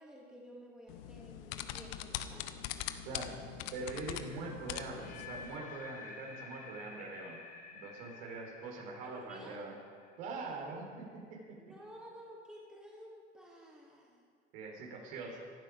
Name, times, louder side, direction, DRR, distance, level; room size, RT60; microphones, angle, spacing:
voice 1, 0.0-2.6 9.0-9.6 11.6-14.3, equal, ahead, -4 dB, 3.3 m, -53 dB
sound 1, 0.9-5.6, left 11 dB, 55° left, 1.0 m, -42 dB
voice 2, 3.7-7.4 7.7-9.7 10.2-11.6 14.5-15.4, right 3 dB, 60° right, -1 dB, 4.4 m, -43 dB
sound 2, 4.8-10.8, left 5 dB, 25° left, 2.0 m, -51 dB
18.0 x 12.0 x 5.0 m, 2.1 s
hypercardioid pair, 90°, 34 cm